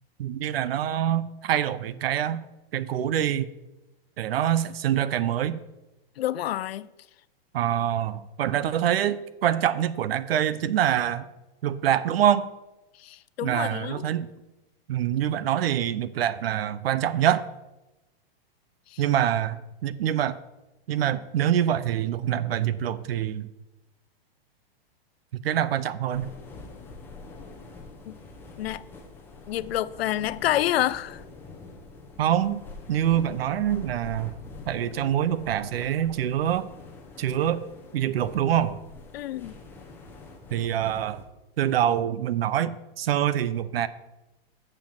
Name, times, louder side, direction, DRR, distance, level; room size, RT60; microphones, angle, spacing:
voice 1, 0.2-2.4 2.7-3.5 4.2-5.6 7.5-11.2 11.6-12.5 13.4-14.3 14.9-17.4 19.0-20.4 20.9-23.5 25.4-26.3 32.2-32.6 32.9-34.3 34.7-36.6 37.2-37.7 37.9-38.8 40.5-41.2 41.6-43.9, right 10 dB, 75° right, 0.6 m, -25 dB
voice 2, 6.2-6.9 13.0-14.1 18.9-19.0 28.1-28.2 28.6-28.8 29.5-31.2 39.1-39.6, left 13 dB, 80° left, 0.5 m, -28 dB
sound 1, 26.1-41.2, left 3 dB, 5° left, 0.9 m, -45 dB
6.8 x 5.9 x 7.2 m
supercardioid pair, 170°, 30 cm